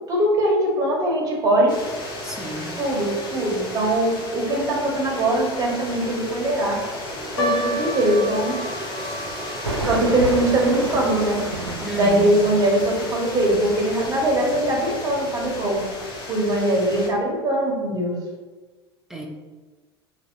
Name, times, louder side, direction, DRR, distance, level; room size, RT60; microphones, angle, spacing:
voice 1, 0.1-1.8 2.8-6.8 7.3-8.6 9.9-11.4 11.9-15.8 16.3-18.2, right 1 dB, 25° right, -1 dB, 1.2 m, -21 dB
sound 1, 1.7-17.1, left 1 dB, 35° left, 1.2 m, -34 dB
voice 2, 2.2-2.8 11.8-12.4 19.1-19.3, right 2 dB, 5° right, -1 dB, 0.8 m, -31 dB
sound 2, 4.5-6.2 6.4-6.9 7.1-7.2 7.6-7.7 9.2-16.0, right 2 dB, 90° right, 0.5 m, -34 dB
sound 3, 7.4-13.9 14.1-14.2 15.0-15.3 15.9-16.0 16.3-16.5, left 1 dB, 75° left, 0.7 m, -33 dB
4.9 x 3.0 x 2.6 m, 1.3 s
figure-of-eight pair, 75°, 14 cm